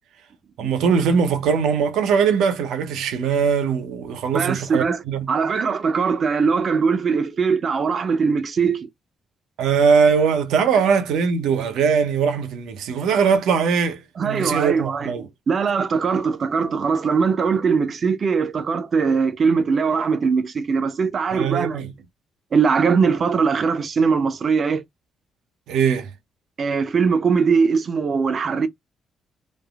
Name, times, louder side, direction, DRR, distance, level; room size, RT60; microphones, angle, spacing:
voice 1, 0.6-5.3 9.6-15.3 21.3-21.9 25.7-26.1, right 6 dB, 85° right, 0.7 m, -21 dB
voice 2, 4.3-5.0 5.3-8.9 14.2-15.1 15.5-21.8 22.5-24.8 26.6-28.7, right 5 dB, 45° right, 0.5 m, -21 dB
3.3 x 2.0 x 2.3 m
cardioid pair, 90°, 0 cm